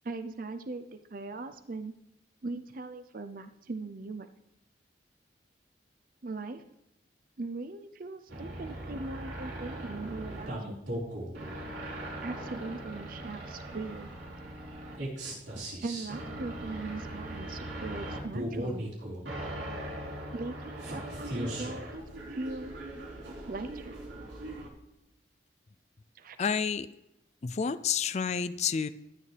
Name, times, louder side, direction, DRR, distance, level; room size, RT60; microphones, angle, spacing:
voice 1, 0.0-1.9 2.4-4.3 6.2-6.6 7.4-10.7 12.2-14.1 15.5-18.9 20.3-21.9 22.3-22.7 23.5-23.9 26.1-26.4, right 3 dB, 50° right, 10 dB, 0.6 m, -39 dB
sound 1, 8.3-24.7, right 1 dB, 70° right, 4.7 m, -39 dB
voice 2, 26.4-26.9 27.4-28.9, left 6 dB, 35° left, 13 dB, 0.4 m, -29 dB
14.0 x 9.8 x 3.4 m, 0.87 s
head